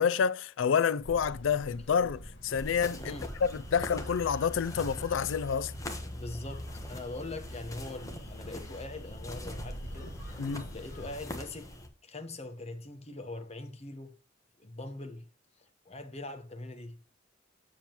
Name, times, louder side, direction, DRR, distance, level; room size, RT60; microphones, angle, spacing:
voice 1, 0.0-3.1 3.4-5.7 10.4-10.7, left 7 dB, 85° left, 0.4 m, -28 dB
sound 1, 1.0-11.2, right 1 dB, 60° left, 1.9 m, -47 dB
sound 2, 2.5-11.9, left 1 dB, 15° left, 1.1 m, -42 dB
voice 2, 6.1-10.4 10.7-11.7 12.0-14.1 14.6-15.3 15.6-17.0, left 2 dB, 35° left, 1.0 m, -42 dB
7.2 x 7.2 x 3.0 m
head